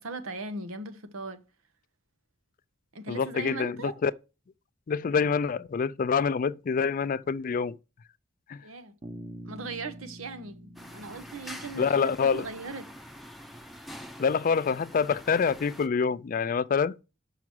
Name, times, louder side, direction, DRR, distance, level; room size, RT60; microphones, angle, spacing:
voice 1, 0.0-1.4 2.9-4.0 8.6-8.9 9.4-12.9, right 3 dB, 90° right, 1.1 m, -39 dB
voice 2, 3.1-4.1 4.9-7.8 8.5-8.6 11.8-12.4 14.2-16.9, left 5 dB, 40° left, 0.3 m, -26 dB
Bass guitar, 9.0-12.9, right 1 dB, 30° right, 0.9 m, -46 dB
sound 1, 10.8-15.9, equal, ahead, 0.6 m, -45 dB
5.9 x 5.9 x 6.2 m
head